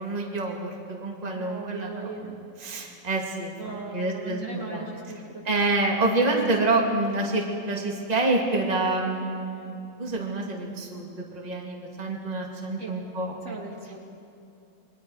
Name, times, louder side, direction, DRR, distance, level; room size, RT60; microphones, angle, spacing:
voice 1, 0.0-4.8 5.4-13.6, right 2 dB, 20° right, -1 dB, 2.2 m, -28 dB
voice 2, 1.4-2.2 3.6-5.6 12.8-13.0 13.4-14.1, right 3 dB, 45° right, -1 dB, 2.6 m, -38 dB
29.0 x 22.0 x 4.8 m, 2.6 s
omnidirectional pair, 1.9 m